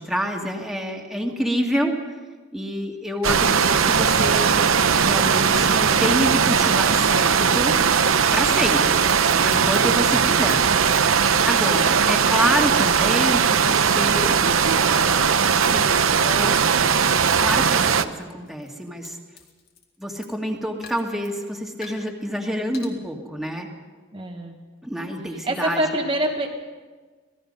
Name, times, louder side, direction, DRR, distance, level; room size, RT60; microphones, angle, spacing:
voice 1, 0.0-2.0 2.5-4.6 5.0-7.8 8.3-9.0 9.3-10.6 11.4-14.4 14.8-15.3 15.6-16.6 17.4-19.2 20.0-23.7 24.8-26.0, equal, ahead, 0 dB, 2.0 m, -27 dB
sound 1, 3.2-18.0, right 6 dB, 85° right, 0.8 m, -19 dB
sound 2, 7.5-8.0 8.3-8.4 8.8-8.9 9.1-9.8 10.2-14.3 14.6-15.0 15.6-15.8 16.5-17.5 17.9-20.4 20.8-21.3 21.8-22.1 22.7-22.9, left 7 dB, 50° left, 2.7 m, -44 dB
voice 2, 24.1-24.6 25.5-26.5, right 1 dB, 25° right, 0 dB, 1.4 m, -25 dB
26.5 x 18.5 x 5.4 m, 1.4 s
head